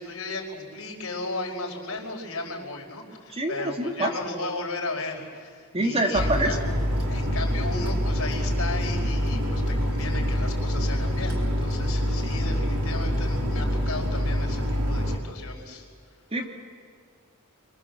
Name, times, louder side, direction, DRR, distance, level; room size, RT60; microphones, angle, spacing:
voice 1, 0.0-6.6 7.1-15.8, left 2 dB, 70° left, 0 dB, 5.1 m, -35 dB
voice 2, 3.3-4.1 5.7-6.6 16.3-16.5, right 1 dB, 25° right, 3 dB, 2.7 m, -25 dB
sound 1, 6.1-15.2, equal, 90° right, 3.5 m, -26 dB
29.5 x 24.0 x 7.5 m, 2.1 s
head